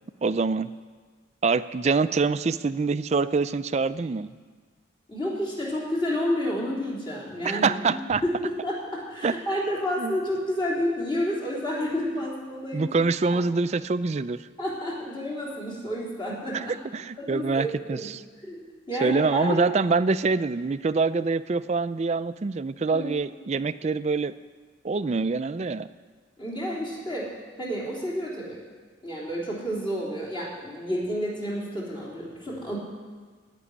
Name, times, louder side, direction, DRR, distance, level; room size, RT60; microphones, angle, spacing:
voice 1, 0.2-0.7 1.4-4.3 7.4-8.2 9.2-9.3 10.0-10.2 12.7-14.4 16.5-16.7 16.9-18.2 19.0-24.3 24.8-25.9, right 4 dB, 35° right, 13 dB, 0.4 m, -25 dB
voice 2, 5.1-7.8 8.2-12.9 13.3-13.4 14.6-16.8 17.2-18.1 18.4-18.6 18.9-19.6 22.9-23.1 26.4-27.3 27.6-28.6 29.0-32.8, equal, 25° left, -5 dB, 3.5 m, -30 dB
16.5 x 6.2 x 9.9 m, 1.5 s
head